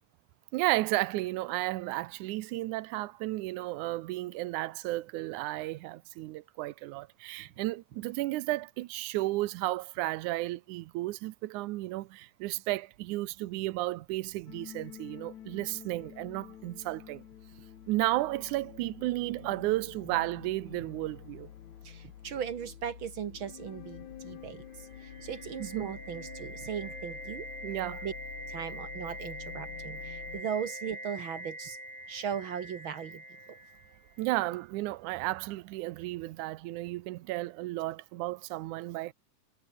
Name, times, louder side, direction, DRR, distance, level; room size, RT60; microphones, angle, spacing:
voice 1, 0.5-17.2 17.9-21.5 25.6-25.9 27.6-28.0 34.2-39.1, right 18 dB, 85° right, 2.2 m, -33 dB
sound 1, 14.5-30.4, left 10 dB, 70° left, 2.9 m, -48 dB
voice 2, 21.8-27.5 28.0-28.1 28.5-31.8 32.1-33.6, right 8 dB, 60° right, 1.4 m, -38 dB
sound 2, 24.5-34.4, right 1 dB, 10° right, 3.6 m, -44 dB
omnidirectional pair, 3.5 m